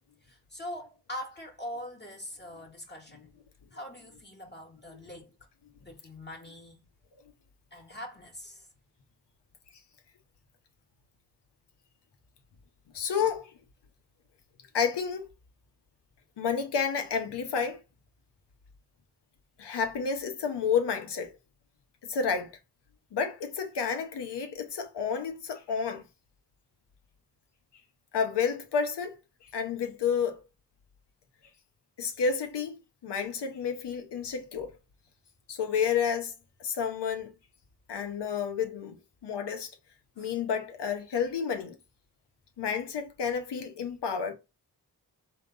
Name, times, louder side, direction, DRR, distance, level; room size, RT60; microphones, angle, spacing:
voice 1, 0.2-3.3 3.7-5.3 5.8-6.8 7.7-8.7 40.1-40.3, left 1 dB, 25° left, 1.3 m, -43 dB
voice 2, 12.9-13.5 14.7-15.3 16.4-17.8 19.6-21.3 22.1-22.5 23.1-26.0 28.1-29.2 29.5-30.4 32.0-34.7 35.5-36.3 36.6-37.3 37.9-39.0 39.2-39.7 40.2-41.7 42.6-44.3, left 6 dB, 80° left, 0.9 m, -30 dB
3.8 x 2.9 x 3.8 m
cardioid pair, 60°, 41 cm